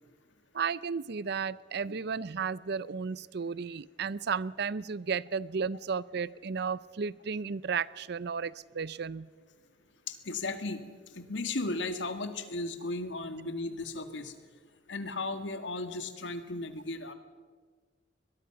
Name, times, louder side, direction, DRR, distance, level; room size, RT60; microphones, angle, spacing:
voice 1, 0.5-9.3, right 5 dB, 65° right, 20 dB, 0.5 m, -33 dB
voice 2, 10.1-10.8 11.2-14.3 14.9-17.1, left 2 dB, 85° left, 9 dB, 1.8 m, -35 dB
23.0 x 20.5 x 5.9 m, 1.5 s
head